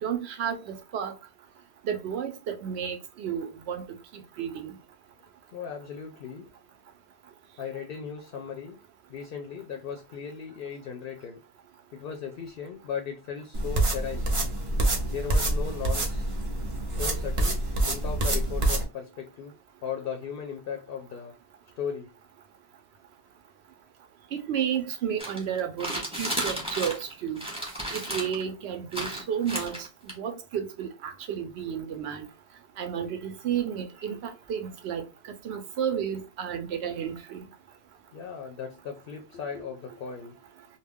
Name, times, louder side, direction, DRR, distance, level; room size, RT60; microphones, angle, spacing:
voice 1, 0.0-1.1 1.9-3.8 4.1-4.7 24.3-25.9 26.2-27.4 27.9-29.8 30.2-32.2 32.8-35.0 35.4-37.4, right 8 dB, 70° right, 0.8 m, -32 dB
voice 2, 5.5-6.5 7.6-8.8 9.1-11.4 11.9-14.3 15.1-16.3 17.0-19.5 19.8-21.3 21.8-22.1 38.1-40.4, left 7 dB, 60° left, 0.7 m, -37 dB
sound 1, 13.5-18.8, right 1 dB, 35° right, 0.6 m, -26 dB
sound 2, 25.2-27.1 27.4-28.4 28.9-30.1, right 1 dB, 5° right, 1.0 m, -33 dB
2.4 x 2.2 x 3.4 m
omnidirectional pair, 1.2 m